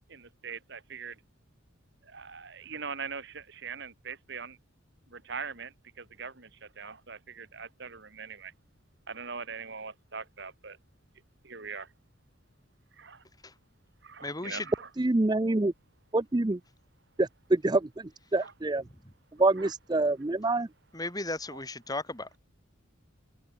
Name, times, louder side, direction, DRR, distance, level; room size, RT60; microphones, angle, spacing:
voice 1, 0.1-1.2 2.0-4.6 5.1-8.5 9.1-10.8 11.4-11.9 13.0-13.2 14.0-14.9 18.4-18.5 19.6-19.7 21.5-21.6, right 5 dB, 55° right, 2.0 m, -42 dB
voice 2, 14.2-14.7 20.9-22.3, left 2 dB, 20° left, 4.9 m, -35 dB
voice 3, 15.0-15.7 16.1-16.6 17.2-18.8 19.4-20.7, right 2 dB, 20° right, 0.5 m, -26 dB
head